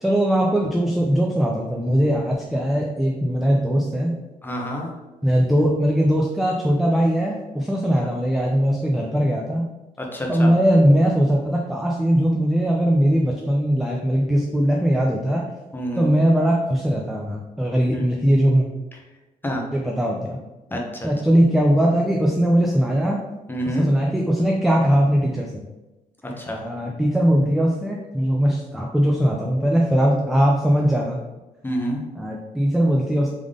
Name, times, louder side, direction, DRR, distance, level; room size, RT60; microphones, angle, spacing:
voice 1, 0.0-4.1 5.2-9.6 10.3-15.5 16.0-18.7 19.7-20.4 21.0-23.2 23.8-25.6 26.6-31.2 32.2-33.3, equal, ahead, -1 dB, 0.5 m, -20 dB
voice 2, 4.4-4.9 10.0-10.5 15.7-16.1 17.9-18.0 19.4-19.6 20.7-21.1 23.5-23.9 26.2-26.6 31.6-32.0, equal, 15° left, 0 dB, 0.9 m, -28 dB
3.6 x 3.5 x 3.6 m, 1.1 s
cardioid pair, 115°, 14 cm